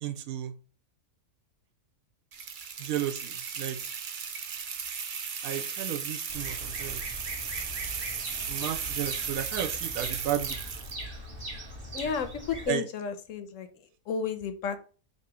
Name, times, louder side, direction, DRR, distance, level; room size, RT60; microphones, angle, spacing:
voice 1, 0.0-0.5 2.8-3.8 5.4-7.0 8.5-10.6 12.7-12.8, right 11 dB, 75° right, 9 dB, 1.0 m, -33 dB
sound 1, 2.3-11.0, right 6 dB, 60° right, 0.5 m, -36 dB
Bird vocalization bird call bird song, 6.3-12.7, right 1 dB, 40° right, 1.4 m, -40 dB
voice 2, 11.9-13.7 14.1-14.8, left 6 dB, 70° left, 9 dB, 0.9 m, -32 dB
3.9 x 2.7 x 4.7 m, 0.38 s
omnidirectional pair, 1.5 m